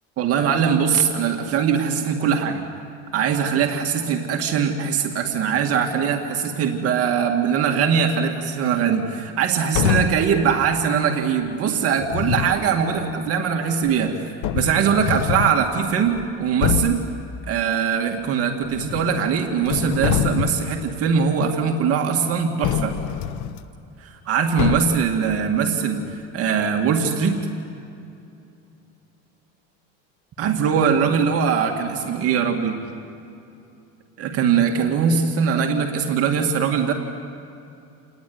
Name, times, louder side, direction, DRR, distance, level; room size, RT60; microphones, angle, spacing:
voice 1, 0.2-2.6 3.1-17.0 17.5-22.9 24.0-27.4 30.4-32.8 34.2-36.9, right 7 dB, 50° right, 2 dB, 2.2 m, -21 dB
sound 1, 9.7-10.3 12.0-12.6 13.9-14.0 14.4-15.6 16.1-16.3 16.6-17.1 18.6-19.3 19.6-20.7 22.6-23.6 24.6-25.1, left 10 dB, 75° left, 1.1 m, -25 dB
28.5 x 20.0 x 9.6 m, 2.7 s
cardioid pair, 145°, 31 cm